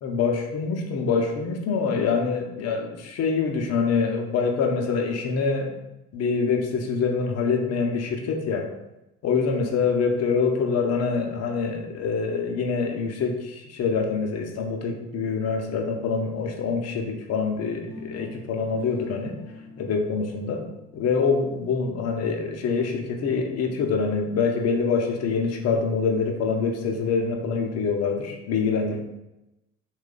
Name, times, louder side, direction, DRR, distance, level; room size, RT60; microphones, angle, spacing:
voice 1, 0.0-5.7 6.1-8.7 9.2-19.4 19.8-20.6 20.9-29.0, left 5 dB, 35° left, 2 dB, 0.6 m, -25 dB
sound 1, 17.9-23.8, left 3 dB, 5° right, 0.4 m, -44 dB
3.0 x 2.4 x 3.6 m, 0.94 s
figure-of-eight pair, 65°, 46 cm